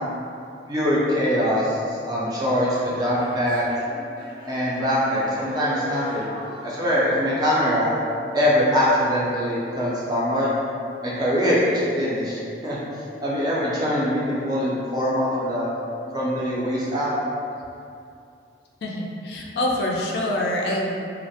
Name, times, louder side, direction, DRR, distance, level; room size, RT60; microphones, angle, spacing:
voice 1, 0.7-3.7 4.4-6.3 6.6-7.9 8.3-10.5 11.0-12.8 13.2-15.7 16.1-17.1, equal, 20° right, -7 dB, 0.4 m, -23 dB
sound 1, 2.7-8.4, left 1 dB, 85° right, 0.9 m, -40 dB
voice 2, 18.8-20.9, left 1 dB, 65° left, -2 dB, 0.3 m, -25 dB
2.2 x 2.0 x 2.7 m, 2.5 s
head